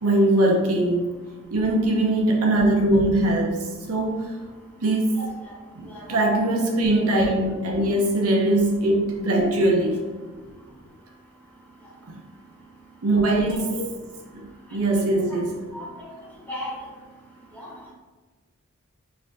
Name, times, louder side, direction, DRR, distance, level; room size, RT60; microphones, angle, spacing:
voice 1, 0.0-1.0 1.5-4.3 4.8-5.1 5.7-10.0 12.1-12.2 13.0-13.8 14.7-15.6, right 1 dB, 75° right, 0 dB, 0.6 m, -21 dB
voice 2, 5.1-5.5 5.9-6.0 6.4-6.5 13.1-13.9 15.1-15.4 15.7-16.1 16.5-16.7 17.5-17.7, left 1 dB, 10° left, -7 dB, 1.0 m, -37 dB
4.2 x 2.6 x 2.6 m, 1.3 s
head